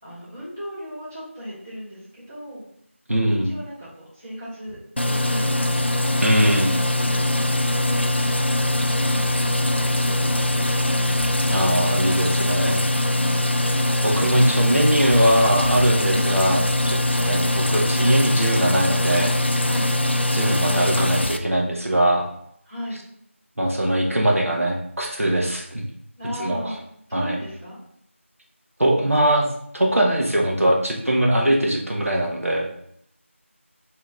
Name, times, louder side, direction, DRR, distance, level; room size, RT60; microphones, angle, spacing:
voice 1, 0.0-2.6 3.4-6.1 6.9-8.0 10.0-11.1 13.0-13.5 16.0-16.2 19.6-19.8 22.6-23.0 26.2-26.8 27.1-27.8, equal, 10° right, -14 dB, 1.2 m, -36 dB
voice 2, 3.1-3.5 6.2-6.8 11.5-12.9 14.0-19.3 20.3-22.3 23.6-25.9 26.4-26.7 27.1-27.4 28.8-29.5 29.7-32.7, right 1 dB, 85° right, -1 dB, 1.0 m, -21 dB
sound 1, 5.0-21.4, left 1 dB, 55° left, 0.4 m, -22 dB
3.6 x 3.0 x 3.6 m, 0.71 s
figure-of-eight pair, 180°, 7 cm